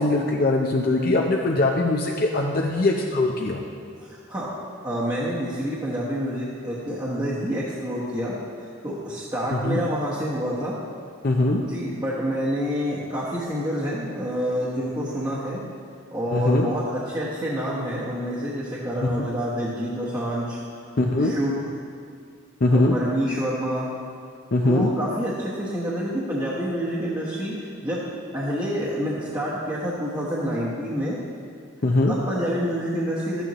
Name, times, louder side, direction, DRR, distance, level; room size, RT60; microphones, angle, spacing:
voice 1, 0.0-3.6 9.5-9.9 11.2-11.6 16.3-16.7 19.0-19.1 21.0-21.3 22.6-22.9 24.5-24.9 31.8-32.1, left 2 dB, 45° left, 0 dB, 0.6 m, -21 dB
voice 2, 4.0-4.5 4.8-10.7 11.6-15.6 16.1-20.6 20.8-20.9 21.2-21.5 22.7-23.9 24.6-28.1 28.3-31.2 32.1-33.4, equal, 20° right, -9 dB, 1.1 m, -28 dB
12.5 x 9.1 x 3.0 m, 2.2 s
head